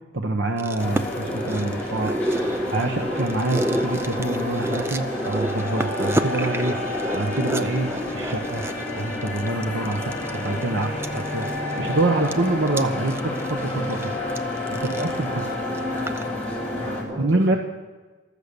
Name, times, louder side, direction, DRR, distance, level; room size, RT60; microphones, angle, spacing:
voice 1, 0.1-2.2 2.7-6.8 7.1-8.6 9.0-11.5 11.8-14.0 14.7-15.4 17.2-17.6, right 2 dB, 70° right, 3 dB, 1.1 m, -26 dB
sound 1, 0.6-16.3 16.5-16.6, right 1 dB, 15° right, 0.5 m, -30 dB
sound 2, 0.8-17.0, left 2 dB, 5° left, 3.7 m, -30 dB
voice 2, 1.4-3.0 13.7-14.0 16.7-17.6, right 1 dB, 35° right, -4 dB, 6.8 m, -37 dB
14.0 x 13.5 x 6.9 m, 1.3 s
head